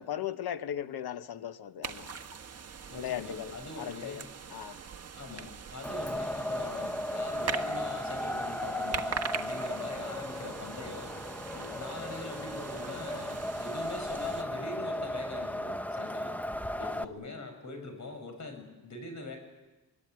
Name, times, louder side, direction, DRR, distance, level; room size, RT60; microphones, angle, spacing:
voice 1, 0.0-2.1 2.9-4.8 11.5-11.8 16.8-17.1, left 10 dB, 80° left, 11 dB, 1.2 m, -38 dB
sound 1, 1.8-14.4, right 6 dB, 40° right, 1.6 m, -42 dB
voice 2, 2.9-4.3 5.2-11.1 11.7-16.4 16.6-19.4, left 3 dB, 50° left, 5 dB, 7.0 m, -42 dB
Wind, 5.8-17.0, left 1 dB, 5° left, 0.8 m, -36 dB
23.5 x 23.0 x 9.5 m, 1.1 s
cardioid pair, 125°, 37 cm